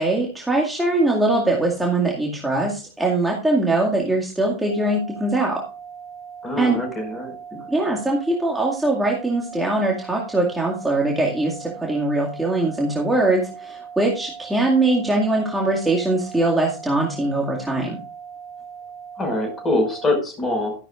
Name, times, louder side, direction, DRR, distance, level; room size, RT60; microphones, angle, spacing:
voice 1, 0.0-5.6 6.6-6.8 7.7-18.0, right 2 dB, 5° right, -3 dB, 2.2 m, -22 dB
sound 1, 4.7-20.0, right 7 dB, 70° left, 4.9 m, -39 dB
voice 2, 6.4-7.3 19.2-20.7, left 2 dB, 20° left, 4 dB, 5.6 m, -24 dB
13.5 x 11.5 x 2.5 m, 0.37 s
figure-of-eight pair, 90°, 0 cm